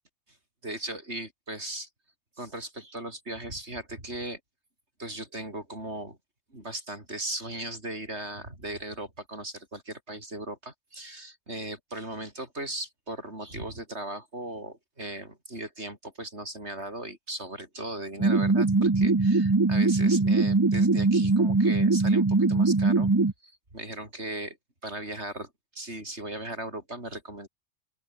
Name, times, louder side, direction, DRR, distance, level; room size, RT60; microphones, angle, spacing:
voice 1, 0.6-1.9 2.4-4.4 5.0-6.2 6.5-23.1 23.4-24.6 24.8-27.5, right 1 dB, 60° right, 7.7 m, -38 dB
sound 1, 18.2-23.3, right 3 dB, 20° right, 0.7 m, -22 dB
open air
omnidirectional pair, 1.3 m